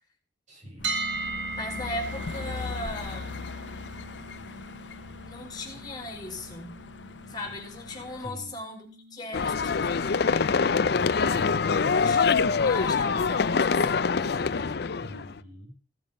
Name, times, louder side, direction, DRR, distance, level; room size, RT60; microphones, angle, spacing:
voice 1, 0.5-1.0 8.2-8.6 10.9-11.5 15.0-15.8, equal, 45° right, 0 dB, 5.9 m, -44 dB
sound 1, 0.8-8.3, left 4 dB, 85° left, 0.8 m, -40 dB
sound 2, 0.8-12.8, right 2 dB, 90° right, 1.5 m, -40 dB
voice 2, 1.5-3.4 5.3-6.7 7.3-10.4 11.9-14.8, left 2 dB, 25° left, 3 dB, 4.2 m, -38 dB
sound 3, 9.3-15.4, left 5 dB, 65° left, 0.5 m, -24 dB
17.0 x 7.3 x 5.4 m, 0.42 s
head